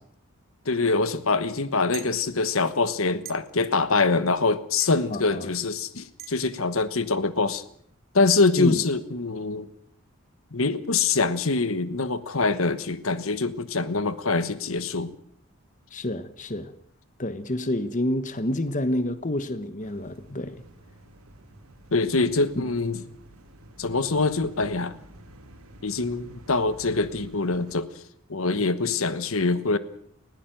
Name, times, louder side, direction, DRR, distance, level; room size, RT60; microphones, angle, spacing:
voice 1, 0.7-7.6 8.1-9.7 10.5-15.1 21.9-23.0 23.8-25.0 25.8-27.9 28.3-29.8, left 3 dB, 75° left, 1.2 m, -24 dB
sound 1, 1.9-2.1 3.2-3.4 4.8-5.0 6.2-6.3, right 11 dB, 45° right, 1.1 m, -39 dB
voice 2, 5.1-5.5 8.6-8.8 15.9-16.7 17.2-20.6, left 1 dB, 35° left, 1.1 m, -28 dB
sound 2, 19.8-27.8, right 1 dB, 90° right, 3.1 m, -50 dB
20.0 x 16.0 x 9.0 m
head